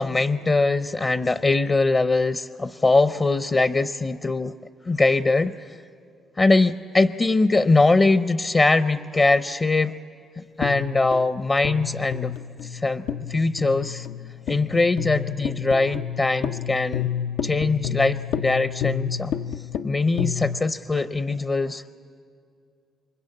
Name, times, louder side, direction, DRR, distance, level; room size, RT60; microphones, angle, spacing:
voice 1, 0.0-4.5 4.9-5.7 6.4-10.0 10.6-12.3 12.6-13.0 13.3-14.1 14.5-17.1 17.4-19.3 19.8-21.8, left 3 dB, 30° left, 11 dB, 0.6 m, -21 dB
sound 1, 10.6-20.6, left 9 dB, 85° left, 0.6 m, -30 dB
28.0 x 24.0 x 8.6 m, 2.3 s
cardioid pair, 90°, 0 cm